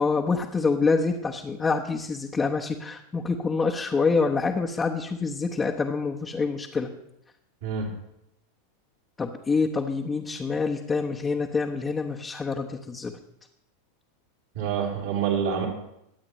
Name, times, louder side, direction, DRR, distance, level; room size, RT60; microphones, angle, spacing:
voice 1, 0.0-6.9 9.2-13.1, left 4 dB, 20° left, -2 dB, 1.2 m, -26 dB
voice 2, 14.5-15.7, right 7 dB, 60° right, -1 dB, 3.4 m, -27 dB
22.5 x 8.7 x 3.2 m, 0.80 s
hypercardioid pair, 90°, 0 cm